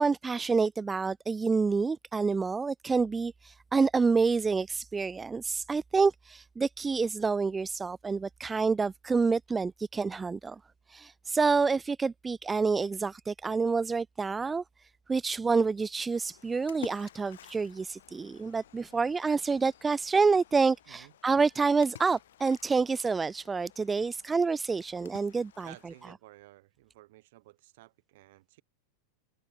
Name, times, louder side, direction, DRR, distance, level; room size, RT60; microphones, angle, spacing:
voice 1, 0.0-10.6 10.9-14.6 15.1-25.7, right 4 dB, 15° right, 0.4 m, -28 dB
Splash splatter, 16.2-26.1, left 12 dB, 60° left, 0.8 m, -52 dB
voice 2, 25.6-28.6, right 18 dB, 50° right, 7.2 m, -54 dB
figure-of-eight pair, 90°, 0 cm